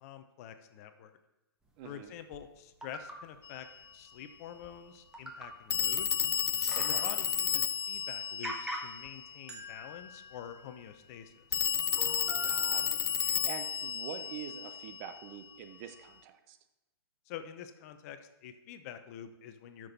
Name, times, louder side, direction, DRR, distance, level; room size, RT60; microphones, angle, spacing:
voice 1, 0.0-1.2 1.8-3.7 3.9-6.1 6.8-11.6 17.3-19.9, left 9 dB, 35° left, 9 dB, 0.8 m, -47 dB
voice 2, 1.8-2.1 6.7-7.1 12.4-16.6, right 8 dB, 35° right, 8 dB, 0.9 m, -46 dB
sound 1, 2.3-2.4 2.8-3.2 4.2-4.3 4.6-4.8 5.1-5.6 6.0-6.1 6.4-7.4 7.9-8.0 8.4-9.1 9.5-11.0 11.5-11.6 11.9-13.3 13.9-14.0, right 1 dB, 5° right, 1.3 m, -43 dB
Telephone, 3.4-3.6 5.7-9.4 11.5-15.2, left 8 dB, 70° left, 0.4 m, -32 dB
12.5 x 6.2 x 4.2 m, 0.97 s
figure-of-eight pair, 125°, 13 cm